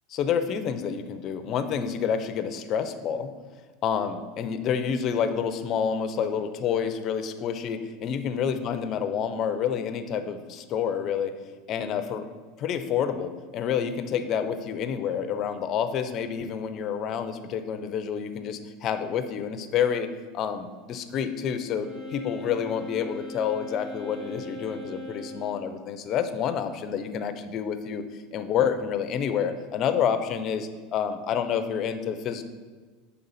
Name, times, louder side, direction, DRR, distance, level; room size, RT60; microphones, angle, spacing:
voice 1, 0.1-3.3 3.8-11.3 11.7-12.3 12.6-20.1 20.3-28.0 28.3-32.5, left 7 dB, 40° left, 10 dB, 0.5 m, -28 dB
Wind instrument woodwind instrument, 21.7-25.8, left 1 dB, 15° right, 1.7 m, -40 dB
5.5 x 3.9 x 5.5 m, 1.4 s
supercardioid pair, 130°, 0 cm